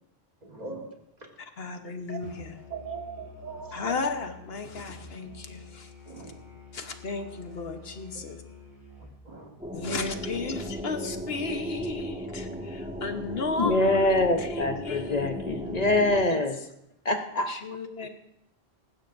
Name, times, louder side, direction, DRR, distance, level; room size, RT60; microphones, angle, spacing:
voice 1, 0.4-1.3 2.1-2.2 2.7-3.9 6.0-6.6 7.2-7.3 8.1-8.3 9.0-10.0 10.9-11.2, right 5 dB, 45° right, 2 dB, 1.7 m, -42 dB
voice 2, 1.6-2.6 3.7-5.9 6.7-8.4 9.7-15.7 16.3-16.4 17.5-18.1, left 3 dB, 75° left, 6 dB, 1.4 m, -34 dB
Musical instrument, 2.2-9.2, left 4 dB, 20° left, 3.3 m, -48 dB
sound 1, 9.6-16.2, equal, 5° right, 1.8 m, -36 dB
voice 3, 13.6-16.6 17.0-17.5, left 2 dB, 45° left, 5 dB, 1.0 m, -24 dB
19.0 x 15.0 x 2.6 m, 0.80 s
omnidirectional pair, 1.0 m